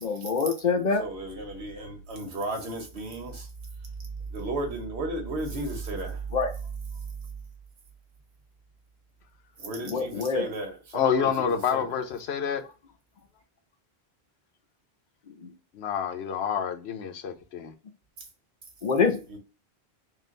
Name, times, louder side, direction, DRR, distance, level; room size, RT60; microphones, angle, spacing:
voice 1, 0.0-1.0 6.3-6.5 9.8-10.5 15.3-15.5 18.8-19.4, left 5 dB, 50° left, 0.7 m, -26 dB
voice 2, 1.0-3.5 4.3-6.2 9.6-12.0 19.3-19.4, right 2 dB, 90° right, 1.4 m, -34 dB
voice 3, 10.9-12.6 15.7-17.7, left 8 dB, 85° left, 0.9 m, -28 dB
3.8 x 2.4 x 3.7 m
omnidirectional pair, 1.1 m